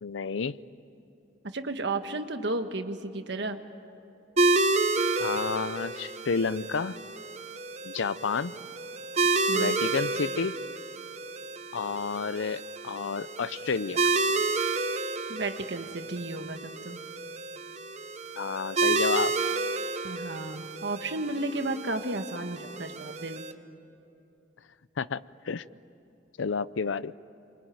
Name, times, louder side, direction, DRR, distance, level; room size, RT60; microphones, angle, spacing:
voice 1, 0.0-0.5 5.2-7.0 7.8-8.6 9.5-10.6 11.7-14.0 18.4-19.3 25.0-25.2 25.5-25.6 26.4-27.1, left 5 dB, 80° left, 17 dB, 0.5 m, -30 dB
voice 2, 1.5-3.6 9.5-9.8 15.3-17.0 20.0-23.4, right 2 dB, 60° right, 7 dB, 1.4 m, -33 dB
sound 1, 4.4-23.5, right 3 dB, 35° right, 0.9 m, -30 dB
26.5 x 24.0 x 9.2 m, 2.8 s
head